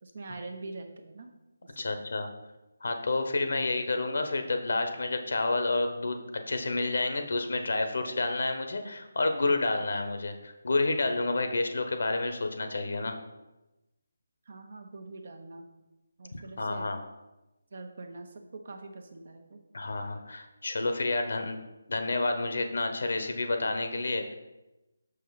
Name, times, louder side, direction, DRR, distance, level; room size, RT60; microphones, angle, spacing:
voice 1, 0.0-1.3 1.6-2.0 14.5-15.7 16.2-16.9 17.7-19.6, right 3 dB, 55° right, 5 dB, 1.0 m, -44 dB
voice 2, 1.8-2.3 2.8-13.2 16.3-17.0 19.7-21.6 21.9-24.3, left 2 dB, 65° left, 6 dB, 1.0 m, -29 dB
6.4 x 5.4 x 4.1 m, 1.0 s
figure-of-eight pair, 155°, 0 cm